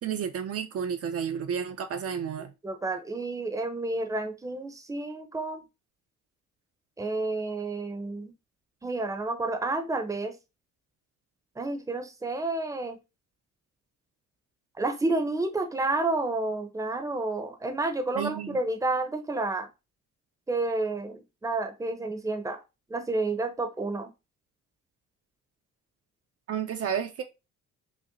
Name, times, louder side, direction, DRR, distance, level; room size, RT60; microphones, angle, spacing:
voice 1, 0.0-2.5 18.2-18.6 26.5-27.2, right 8 dB, 50° right, 0.5 m, -31 dB
voice 2, 2.6-5.6 7.0-8.3 8.8-10.4 11.6-13.0 14.8-19.7 20.5-22.6 22.9-24.1, right 2 dB, 10° right, 0.6 m, -30 dB
5.6 x 2.1 x 2.5 m
cardioid pair, 90°, 30 cm